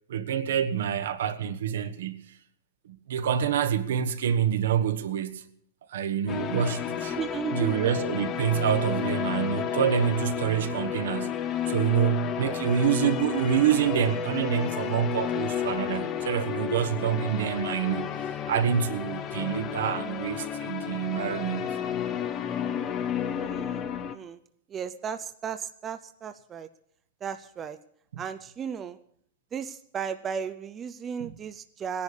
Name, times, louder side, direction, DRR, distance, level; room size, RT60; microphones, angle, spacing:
voice 1, 0.1-2.2 2.8-5.4 5.9-7.2 7.5-11.4 11.7-18.1 18.4-21.8 28.1-28.2 31.2-31.3, right 9 dB, 75° right, 1.3 m, -27 dB
sound 1, 6.3-24.2, left 9 dB, 25° left, 0.7 m, -32 dB
voice 2, 7.1-7.8 23.4-23.8 24.1-24.4 24.7-26.7 27.2-27.8 28.2-29.0 29.5-32.0, right 7 dB, 20° right, 0.5 m, -35 dB
18.0 x 10.5 x 6.8 m
supercardioid pair, 155°, 0 cm